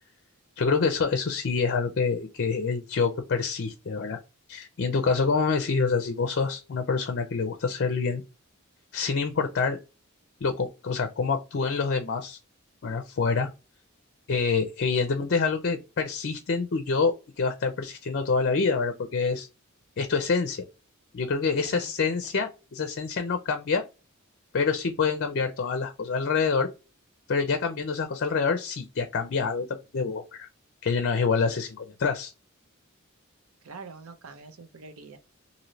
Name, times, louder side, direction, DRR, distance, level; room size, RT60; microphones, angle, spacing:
voice 1, 0.6-4.2 4.5-8.2 8.9-9.8 10.4-12.4 12.8-13.5 14.3-19.5 20.0-20.6 21.1-23.8 24.5-26.7 27.3-30.5 30.8-32.3, left 5 dB, 50° left, 0.5 m, -26 dB
voice 2, 33.6-35.2, right 4 dB, 70° right, 0.6 m, -45 dB
3.1 x 2.7 x 2.6 m
head